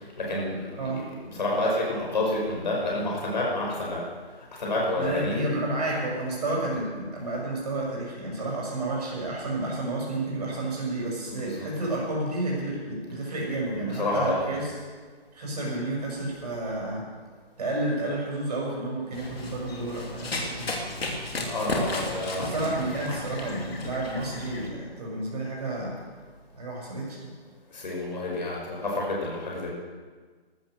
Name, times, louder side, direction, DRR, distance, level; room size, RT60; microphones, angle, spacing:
voice 1, 0.2-4.0 4.6-5.5 11.3-11.7 13.7-14.5 21.4-22.8 23.0-23.2 27.7-29.7, left 1 dB, 45° left, -2 dB, 5.4 m, -29 dB
voice 2, 5.0-14.7 15.3-17.0 17.6-20.7 22.4-26.0 26.6-27.3, right 2 dB, 40° right, -3 dB, 6.4 m, -31 dB
Run, 19.1-24.7, left 2 dB, 70° left, 3.1 m, -34 dB
14.0 x 13.0 x 6.6 m, 1.5 s
hypercardioid pair, 170°, 32 cm